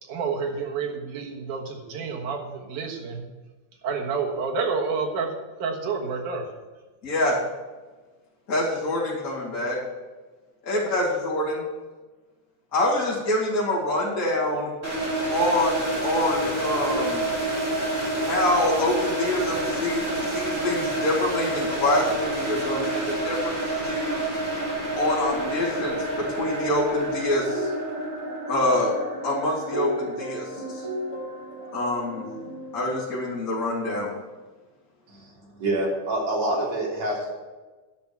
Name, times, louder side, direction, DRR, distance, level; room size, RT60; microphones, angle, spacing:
voice 1, 0.0-3.2 3.8-6.5, right 5 dB, 85° right, 2 dB, 3.0 m, -29 dB
voice 2, 7.0-7.3 8.5-9.8 10.6-11.6 12.7-14.7 15.3-17.2 18.1-20.0 20.3-24.2 25.0-27.7 28.5-28.9 29.2-30.8 31.7-32.2 32.7-34.1, left 1 dB, 30° left, -6 dB, 3.2 m, -26 dB
sound 1, 14.8-31.7, right 1 dB, 15° right, 3.0 m, -29 dB
sound 2, 27.3-33.2, equal, 10° left, 3.1 m, -35 dB
voice 3, 35.6-37.3, right 1 dB, 60° right, -4 dB, 4.2 m, -26 dB
10.5 x 5.8 x 8.6 m, 1.3 s
omnidirectional pair, 3.5 m